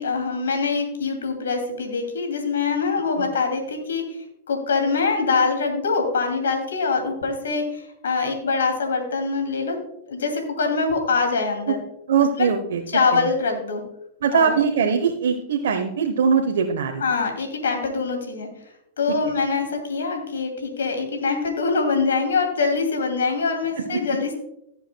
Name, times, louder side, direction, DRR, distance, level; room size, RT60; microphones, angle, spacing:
voice 1, 0.0-4.2 4.5-9.8 10.1-11.8 12.4-12.5 12.9-13.8 14.3-14.6 17.0-18.5 19.0-24.3, left 4 dB, 90° left, 4 dB, 2.5 m, -24 dB
voice 2, 12.1-13.3 14.2-17.0 19.1-19.2 23.8-24.0, right 6 dB, 80° right, 4 dB, 1.0 m, -22 dB
17.0 x 7.3 x 2.3 m, 0.80 s
hypercardioid pair, 115°, 0 cm